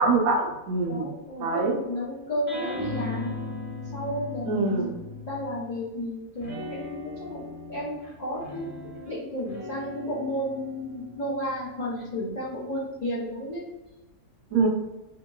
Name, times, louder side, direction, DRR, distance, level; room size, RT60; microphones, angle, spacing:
voice 1, 0.0-1.1 1.4-1.8 4.5-4.9 14.5-14.7, right 3 dB, 70° right, 1 dB, 1.0 m, -24 dB
voice 2, 0.9-3.4 3.9-4.9 5.3-7.4 7.7-8.7 9.1-13.6, equal, 70° left, -7 dB, 0.4 m, -32 dB
sound 1, 2.5-5.8 6.4-13.2, left 2 dB, 40° right, 1.0 m, -39 dB
2.8 x 2.7 x 2.3 m, 1.1 s
omnidirectional pair, 1.7 m